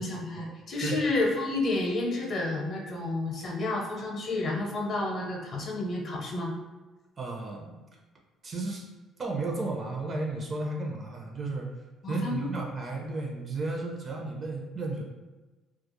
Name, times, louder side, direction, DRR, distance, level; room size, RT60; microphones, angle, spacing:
voice 1, 0.0-6.5 12.0-12.5, left 2 dB, 55° left, -1 dB, 0.7 m, -30 dB
voice 2, 7.2-7.8 8.4-8.9 9.2-11.7 12.1-15.0, right 2 dB, 40° right, 0 dB, 0.6 m, -33 dB
2.3 x 2.0 x 3.0 m, 1.2 s
cardioid pair, 85°, 0 cm